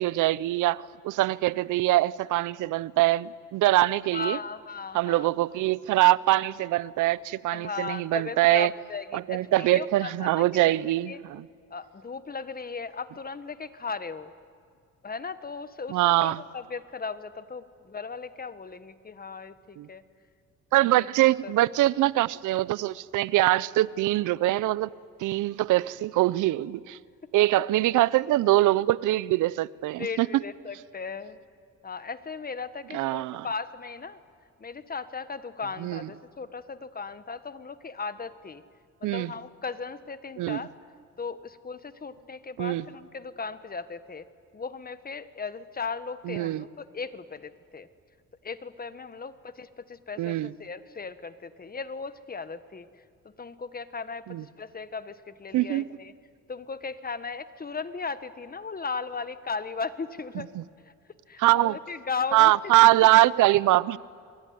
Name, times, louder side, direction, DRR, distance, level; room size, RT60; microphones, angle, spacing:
voice 1, 0.0-4.4 4.9-8.7 9.1-11.5 15.9-16.4 19.8-19.9 20.7-24.9 25.2-27.0 27.3-30.4 32.9-33.5 35.8-36.1 39.0-39.3 40.4-40.6 42.6-42.8 46.3-46.6 50.2-50.5 54.3-54.4 55.5-55.9 60.5-60.6 61.4-61.7 62.3-64.0, right 16 dB, 85° right, 0.7 m, -23 dB
voice 2, 4.1-5.3 7.5-10.8 11.1-11.2 11.7-14.3 15.0-20.0 20.8-21.0 21.4-21.5 30.0-31.4 31.8-34.2 34.6-38.6 39.0-40.7 41.2-44.3 44.5-47.9 48.4-52.9 53.2-56.1 56.5-60.5 60.8-60.9 61.3-62.5, left 5 dB, 30° left, 1.4 m, -37 dB
27.5 x 23.0 x 9.6 m
cardioid pair, 90°, 30 cm